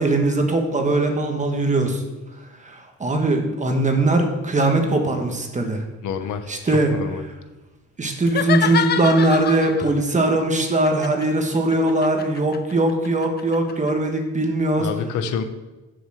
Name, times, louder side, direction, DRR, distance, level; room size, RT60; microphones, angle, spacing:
voice 1, 0.0-2.0 2.6-5.8 6.5-6.9 8.0-14.9, right 2 dB, 25° right, 3 dB, 1.4 m, -20 dB
voice 2, 6.0-7.2 14.8-15.4, left 6 dB, 85° left, 9 dB, 1.0 m, -28 dB
sound 1, 8.2-10.0 10.9-13.9, left 8 dB, 35° left, 0.4 m, -27 dB
7.1 x 7.1 x 6.6 m, 1.1 s
cardioid pair, 120°, 29 cm